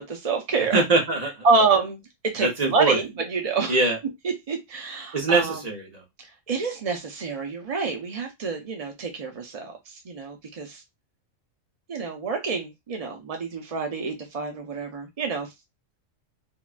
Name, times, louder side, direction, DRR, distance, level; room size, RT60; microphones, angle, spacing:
voice 1, 0.0-0.8 1.4-3.9 4.2-5.6 6.5-10.8 11.9-15.5, right 4 dB, 60° right, 0.3 m, -27 dB
voice 2, 0.7-1.4 2.4-3.0 3.7-4.0 5.1-6.0, right 3 dB, 35° right, 0.9 m, -23 dB
3.5 x 2.3 x 2.4 m
omnidirectional pair, 1.4 m